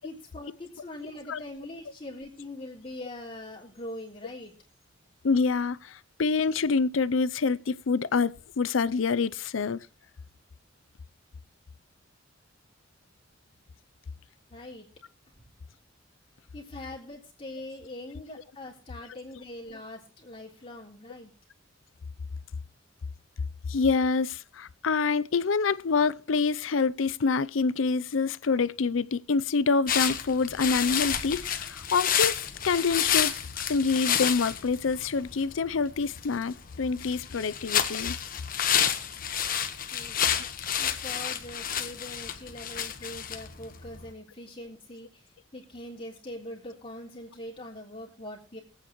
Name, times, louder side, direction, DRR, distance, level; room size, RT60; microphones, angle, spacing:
voice 1, 0.0-4.5 14.5-14.9 15.3-15.4 16.5-21.3 39.9-40.2 40.8-45.3 45.5-48.6, left 1 dB, 30° left, 3.6 m, -42 dB
voice 2, 5.2-9.8 23.7-33.3 33.7-38.2 40.4-40.5, left 4 dB, 90° left, 0.5 m, -26 dB
sound 1, 29.9-44.1, left 9 dB, 45° left, 1.2 m, -30 dB
23.5 x 8.7 x 3.1 m
head